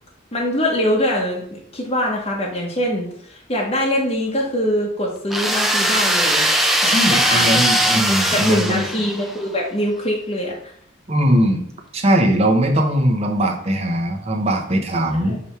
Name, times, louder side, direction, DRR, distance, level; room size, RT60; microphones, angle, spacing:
voice 1, 0.3-6.5 6.8-7.7 7.9-10.7 15.2-15.4, equal, 30° left, -2 dB, 1.0 m, -23 dB
sound 1, 5.3-9.4, right 1 dB, ahead, 0.6 m, -19 dB
voice 2, 6.9-8.8 11.1-11.6 11.9-15.4, equal, 35° right, 3 dB, 1.0 m, -20 dB
7.1 x 3.4 x 4.4 m, 0.68 s
head